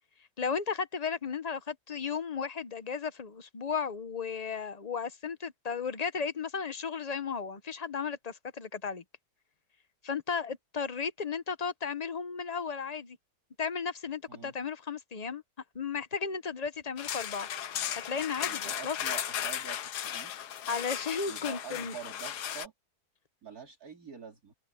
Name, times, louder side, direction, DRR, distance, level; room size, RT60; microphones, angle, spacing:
voice 1, 0.4-9.0 10.0-13.2 13.6-15.4 15.7-17.5 18.0-19.0 20.7-21.9, left 6 dB, 35° left, 0.7 m, -34 dB
sound 1, 17.0-22.7, left 10 dB, 85° left, 1.5 m, -36 dB
voice 2, 18.4-20.5 21.2-22.7 23.4-24.5, right 7 dB, 65° right, 3.3 m, -46 dB
open air
omnidirectional pair, 1.7 m